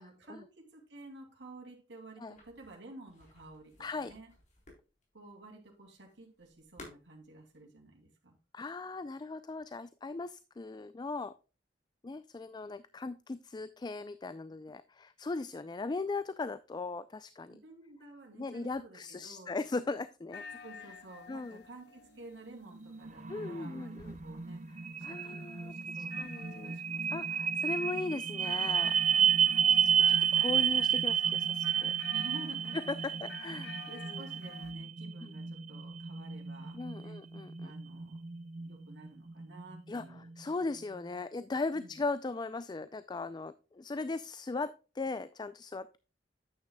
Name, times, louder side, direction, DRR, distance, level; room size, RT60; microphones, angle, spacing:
voice 1, 0.0-4.3 5.1-8.3 17.5-19.6 20.6-24.7 25.0-27.2 29.2-29.9 32.1-33.1 33.9-37.2 37.6-38.2 38.5-40.3 41.7-42.0, right 2 dB, 75° right, 1 dB, 2.5 m, -52 dB
sound 1, 2.3-7.6, left 2 dB, 45° left, 3.7 m, -56 dB
voice 2, 3.8-4.1 8.5-11.3 12.0-17.5 18.4-20.4 21.3-21.6 23.3-24.2 25.0-25.7 26.2-26.7 27.1-29.0 30.1-31.9 32.9-33.7 34.1-34.2 36.7-37.7 39.9-40.0 40.4-46.0, left 3 dB, 25° left, 14 dB, 0.3 m, -38 dB
sound 2, 20.3-34.7, left 6 dB, 60° left, 0.8 m, -52 dB
sound 3, 22.4-40.4, right 8 dB, 40° right, 0.7 m, -32 dB
9.2 x 9.1 x 2.2 m, 0.33 s
head